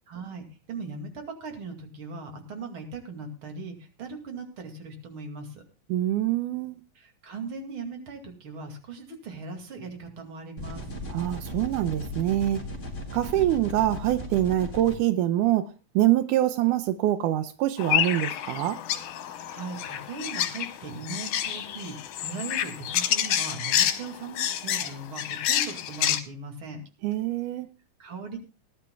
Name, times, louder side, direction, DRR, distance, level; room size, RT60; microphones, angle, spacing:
voice 1, 0.1-5.6 6.9-10.9 13.2-13.5 19.5-22.0 22.2-26.8 28.0-28.4, right 3 dB, 45° right, 2.9 m, -39 dB
voice 2, 5.9-6.8 11.1-12.6 13.1-15.7 16.0-18.8 27.0-27.7, right 13 dB, 90° right, 2.3 m, -25 dB
sound 1, 10.6-14.9, left 1 dB, 20° left, 4.2 m, -37 dB
sound 2, 17.8-26.2, left 11 dB, 85° left, 2.5 m, -28 dB
20.0 x 11.5 x 2.3 m
omnidirectional pair, 3.5 m